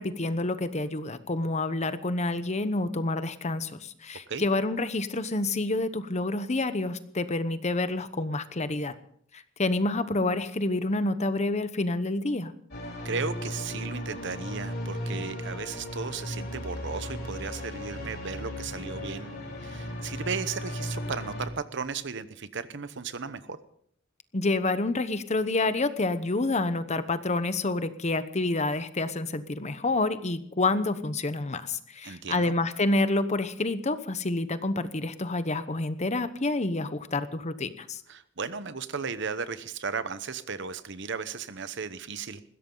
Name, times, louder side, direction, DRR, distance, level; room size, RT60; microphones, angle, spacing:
voice 1, 0.0-8.9 9.3-12.5 24.3-38.0, left 2 dB, 35° left, 12 dB, 1.0 m, -28 dB
sound 1, 12.7-21.5, left 1 dB, 55° left, 4.3 m, -36 dB
voice 2, 13.0-19.3 19.6-23.6 32.0-32.5 38.1-42.4, right 5 dB, 65° right, 13 dB, 1.0 m, -35 dB
20.5 x 16.0 x 3.9 m, 0.63 s
head